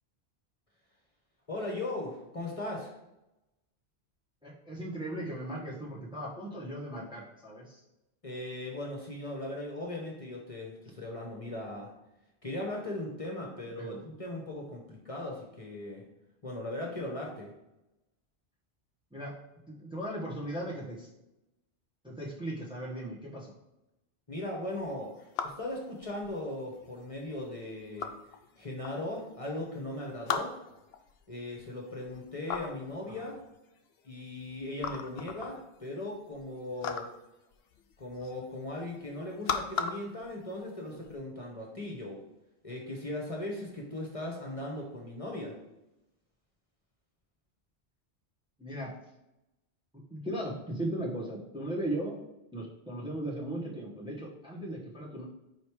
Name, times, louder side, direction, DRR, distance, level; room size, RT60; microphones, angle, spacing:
voice 1, 1.5-2.9 8.2-11.9 12.4-16.0 16.4-17.5 24.3-28.1 28.6-30.5 31.3-33.4 34.0-37.1 38.0-42.2 42.6-45.6, left 1 dB, 30° left, -2 dB, 1.2 m, -38 dB
voice 2, 4.4-7.8 13.8-14.0 19.1-19.4 19.7-21.1 22.0-23.5 33.1-33.2 48.6-48.9 50.1-52.2 52.5-55.3, right 1 dB, 5° right, -4 dB, 1.1 m, -37 dB
sound 1, 24.8-41.2, left 6 dB, 70° left, 0.8 m, -40 dB
5.2 x 4.8 x 4.7 m, 0.92 s
omnidirectional pair, 1.1 m